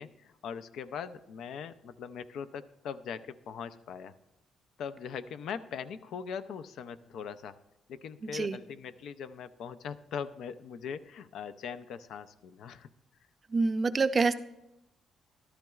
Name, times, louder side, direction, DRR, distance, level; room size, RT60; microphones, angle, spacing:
voice 1, 0.0-4.2 4.8-7.6 7.9-12.9, left 7 dB, 75° left, 12 dB, 0.5 m, -41 dB
voice 2, 13.5-14.3, right 4 dB, 35° right, 12 dB, 0.5 m, -26 dB
13.5 x 12.5 x 2.4 m, 0.92 s
cardioid pair, 90°, 0 cm